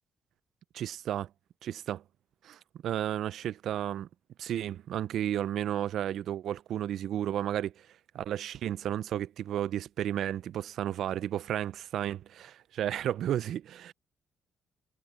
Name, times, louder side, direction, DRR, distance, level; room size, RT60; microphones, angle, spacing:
voice 1, 0.7-1.3 1.6-2.0 2.4-4.1 4.4-7.7 8.1-13.9, right 11 dB, 75° right, 0.4 m, -33 dB
cardioid pair, 90°, 0 cm